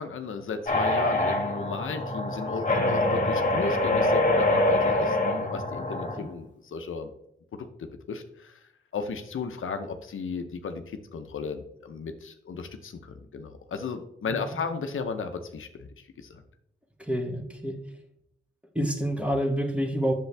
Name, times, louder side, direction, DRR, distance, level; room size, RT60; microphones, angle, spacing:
voice 1, 0.0-7.1 7.5-8.6 8.9-16.4, left 5 dB, 75° left, 7 dB, 0.8 m, -35 dB
sound 1, 0.7-6.2, left 1 dB, 35° left, 1.5 m, -25 dB
voice 2, 14.3-14.6 17.0-17.8 18.7-20.1, equal, 5° right, 4 dB, 1.4 m, -28 dB
8.1 x 6.9 x 3.4 m, 0.76 s
cardioid pair, 65°, 21 cm